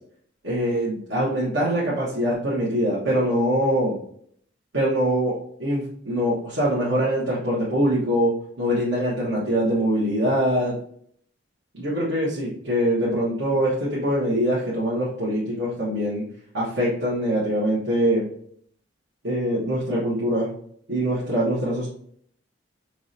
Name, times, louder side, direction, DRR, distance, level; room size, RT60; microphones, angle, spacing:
voice 1, 0.4-4.0 4.7-5.3 5.6-10.7 11.7-16.3 16.5-18.2 19.2-20.5 20.9-21.9, equal, 75° right, -8 dB, 1.2 m, -23 dB
4.7 x 3.0 x 2.7 m, 0.64 s
head